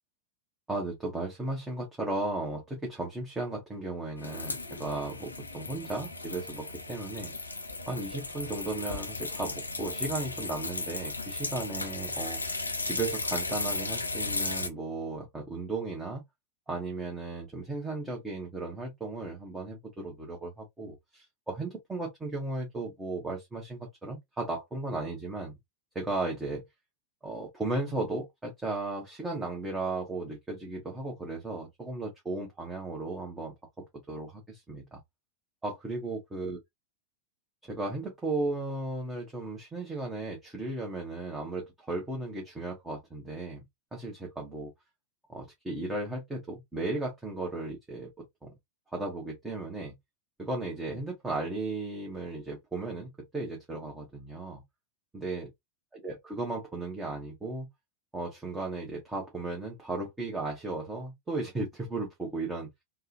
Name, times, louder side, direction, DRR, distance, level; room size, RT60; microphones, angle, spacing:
voice 1, 0.7-7.3 7.9-12.4 12.8-16.2 16.7-25.5 25.9-26.6 27.2-35.0 35.6-36.6 37.6-43.6 43.9-44.7 45.3-48.1 48.4-48.5 48.9-49.9 50.4-54.6 55.1-55.5 56.0-57.7 58.1-62.7, right 2 dB, 10° right, 1.1 m, -35 dB
sound 1, 4.2-14.7, left 3 dB, 80° left, 0.5 m, -35 dB
3.5 x 2.3 x 2.7 m
figure-of-eight pair, 90°, 0 cm